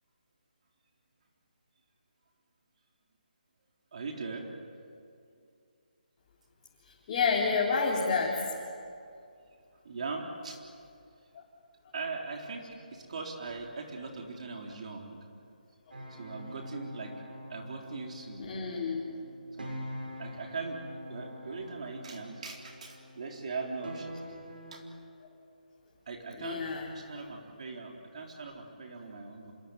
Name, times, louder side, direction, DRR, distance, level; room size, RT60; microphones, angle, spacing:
voice 1, 3.9-4.5 9.8-10.6 11.9-15.2 16.2-17.2 17.5-18.4 19.6-19.8 20.2-20.8 21.1-24.2 24.7-24.8 26.1-26.6 26.9-29.5, right 4 dB, 50° right, 1 dB, 3.9 m, -40 dB
voice 2, 7.1-8.4 18.4-19.0 26.4-26.8, left 5 dB, 30° left, -4 dB, 4.0 m, -28 dB
sound 1, 15.9-24.8, equal, 85° right, 6.3 m, -45 dB
27.0 x 22.0 x 9.6 m, 2.3 s
hypercardioid pair, 160°, 5 cm